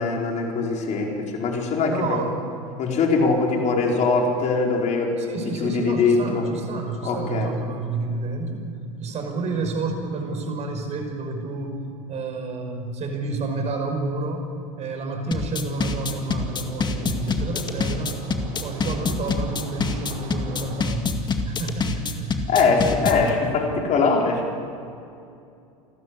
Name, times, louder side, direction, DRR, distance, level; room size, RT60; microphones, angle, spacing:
voice 1, 0.0-2.2 2.8-5.2 5.6-6.4 7.0-7.5 22.5-24.4, left 4 dB, 40° left, 0 dB, 4.7 m, -22 dB
voice 2, 1.9-2.4 5.2-8.6 9.0-14.5 14.8-22.9 23.2-23.5, right 3 dB, 40° right, 4 dB, 5.4 m, -30 dB
sound 1, 15.3-23.3, left 4 dB, 25° left, 2.1 m, -26 dB
sound 2, 15.7-20.9, right 6 dB, 65° right, 2.6 m, -41 dB
28.5 x 12.5 x 8.6 m, 2.6 s
hypercardioid pair, 95°, 18 cm